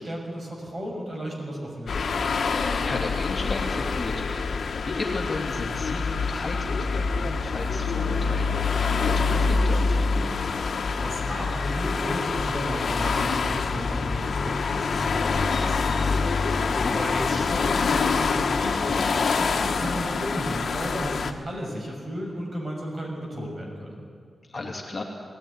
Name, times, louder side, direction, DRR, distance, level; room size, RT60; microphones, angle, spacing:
voice 1, 0.0-2.4 11.0-24.0, equal, 40° right, -1 dB, 6.2 m, -34 dB
sound 1, 1.9-21.3, left 4 dB, 60° left, 1.4 m, -25 dB
voice 2, 2.8-10.2 16.7-17.0 24.5-25.0, left 2 dB, 30° left, -1 dB, 2.8 m, -34 dB
19.5 x 15.5 x 9.9 m, 2.2 s
wide cardioid pair, 120°, 0 cm